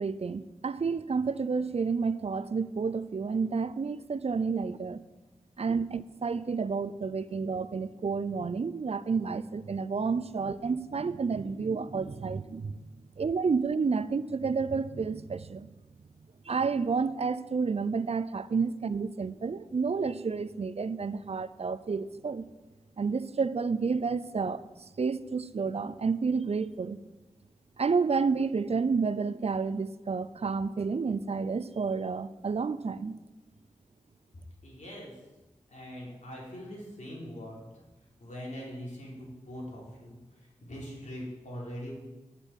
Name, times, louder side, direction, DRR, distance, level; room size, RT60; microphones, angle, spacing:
voice 1, 0.0-5.0 5.6-12.8 13.2-15.7 16.5-22.4 23.0-24.6 25.0-27.0 27.8-33.2, right 5 dB, 55° right, 15 dB, 0.6 m, -30 dB
voice 2, 34.6-35.1 35.7-37.6 38.2-42.0, equal, 75° left, -4 dB, 4.3 m, -42 dB
9.9 x 8.1 x 7.4 m, 1.1 s
cardioid pair, 55°, 13 cm